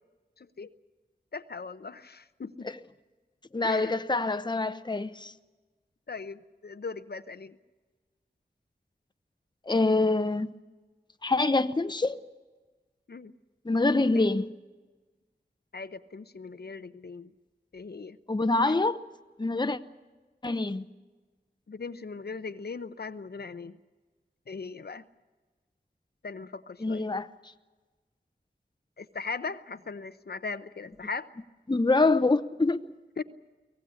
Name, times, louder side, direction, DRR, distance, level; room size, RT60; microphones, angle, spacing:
voice 1, 0.4-0.7 1.3-2.7 3.6-3.9 6.1-7.6 13.1-13.3 14.1-14.3 15.7-17.3 17.7-18.2 18.7-18.8 21.7-23.8 24.5-25.0 26.2-27.1 29.0-31.3 33.2-33.3, left 4 dB, 70° left, 0.8 m, -39 dB
voice 2, 3.5-5.3 9.7-10.5 11.2-12.2 13.6-14.5 18.3-19.0 19.4-19.8 20.4-20.8 26.8-27.3 31.7-32.8, left 2 dB, 25° left, 0.8 m, -25 dB
24.0 x 17.5 x 8.5 m
wide cardioid pair, 60°, 17 cm